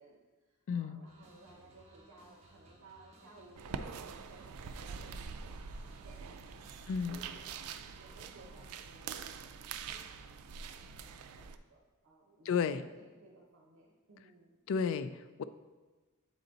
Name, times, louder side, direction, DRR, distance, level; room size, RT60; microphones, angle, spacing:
voice 1, 0.0-6.7 7.1-14.5, right 2 dB, 60° right, -2 dB, 0.8 m, -59 dB
voice 2, 0.7-1.0 6.9-7.2 12.5-12.8 14.7-15.4, left 6 dB, 60° left, 12 dB, 0.3 m, -33 dB
sound 1, 1.0-9.1, right 1 dB, 30° right, 0.9 m, -62 dB
sound 2, 3.6-11.6, right 6 dB, 80° right, 0.4 m, -45 dB
8.0 x 4.0 x 3.9 m, 1.2 s
head